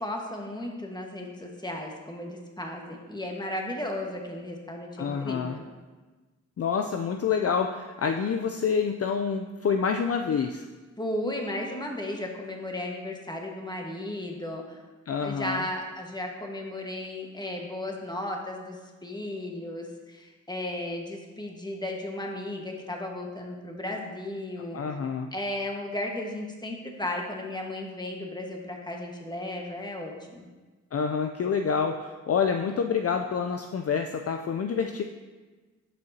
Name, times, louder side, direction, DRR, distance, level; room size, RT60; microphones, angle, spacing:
voice 1, 0.0-5.6 11.0-14.8 15.2-24.8 25.3-30.4, left 1 dB, 15° left, 1 dB, 1.4 m, -35 dB
voice 2, 5.0-5.6 6.6-10.6 15.1-15.7 24.7-25.3 30.9-35.0, left 6 dB, 50° left, 5 dB, 0.5 m, -27 dB
11.0 x 5.3 x 2.8 m, 1.3 s
cardioid pair, 45°, 32 cm